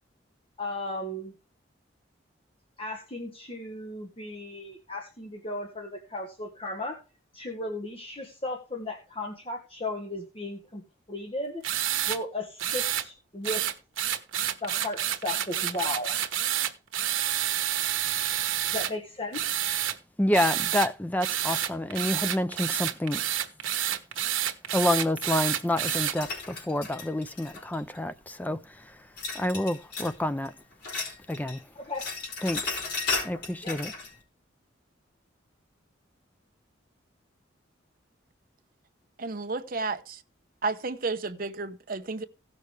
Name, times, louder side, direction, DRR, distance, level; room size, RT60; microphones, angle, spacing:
voice 1, 0.6-1.3 2.8-7.0 7.3-10.8 11.1-11.6 12.1-13.6 14.6-16.2 18.7-19.7 31.7-32.1 33.6-33.8, left 2 dB, 30° left, 1.4 m, -35 dB
sound 1, 11.6-12.2 12.6-13.1 13.4-18.9 19.3-20.0 20.3-20.9 21.2-26.1, right 11 dB, 90° right, 1.2 m, -29 dB
voice 2, 20.2-23.2 24.7-29.0 29.3-30.5 31.3-31.6 32.4-32.6 33.2-33.9, left 1 dB, 10° left, 0.4 m, -28 dB
sound 2, 25.8-28.0 29.2-30.2 30.5-31.6 31.8-34.1, left 4 dB, 55° left, 5.1 m, -35 dB
voice 3, 39.2-40.2 40.6-42.2, right 3 dB, 45° right, 0.9 m, -32 dB
17.0 x 6.4 x 3.3 m
head